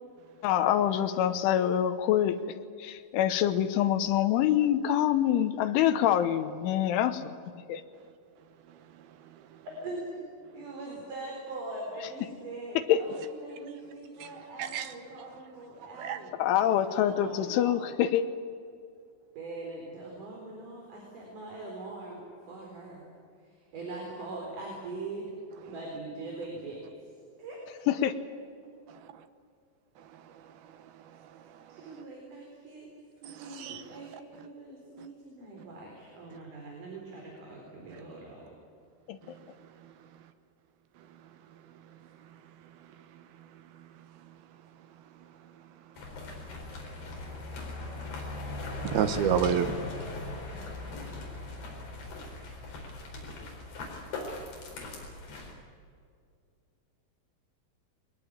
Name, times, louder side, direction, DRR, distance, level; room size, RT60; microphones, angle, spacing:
voice 1, 0.4-2.4 2.8-7.3 7.7-7.8 12.8-13.0 16.4-18.2 27.9-28.1 39.1-39.2, left 11 dB, 80° left, 10 dB, 3.4 m, -25 dB
voice 2, 8.9-9.6 14.2-14.9 15.9-16.7 25.6-26.0 28.9-29.2 30.0-32.0 33.2-34.2 35.0-35.1 39.3-39.4 39.8-39.9 42.2-42.3 43.1-44.3 46.6-46.7 47.0-47.5 48.1-48.5 48.8-49.7, right 8 dB, 75° right, 9 dB, 2.3 m, -35 dB
voice 3, 9.8-10.2 10.5-16.3 16.8-17.7 19.4-22.2 22.5-23.1 23.4-25.3 25.7-26.8 27.4-27.6 31.7-32.9 33.2-38.5, right 2 dB, 45° right, -1 dB, 5.4 m, -42 dB
sound 1, 46.0-55.5, left 2 dB, 55° left, 6.2 m, -39 dB
22.5 x 20.0 x 8.9 m, 2.4 s
omnidirectional pair, 5.7 m